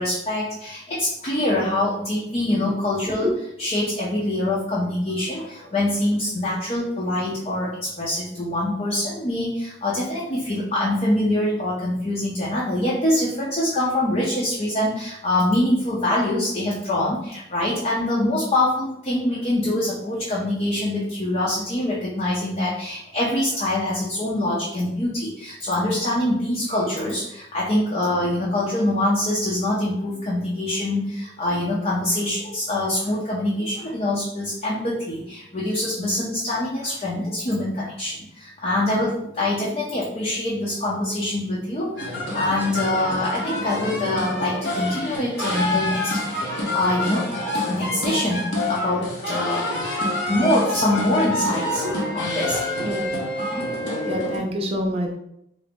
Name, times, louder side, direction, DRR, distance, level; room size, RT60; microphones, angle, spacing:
voice 1, 0.0-3.3 3.6-47.3 47.5-49.7 50.3-51.9 52.1-52.6 53.5-53.7, left 1 dB, 35° left, -6 dB, 0.6 m, -24 dB
sound 1, 42.0-54.4, left 1 dB, 80° left, 0.9 m, -27 dB
voice 2, 52.8-53.1 54.0-55.1, equal, 35° right, 1 dB, 0.5 m, -27 dB
3.8 x 2.0 x 3.4 m, 0.77 s
head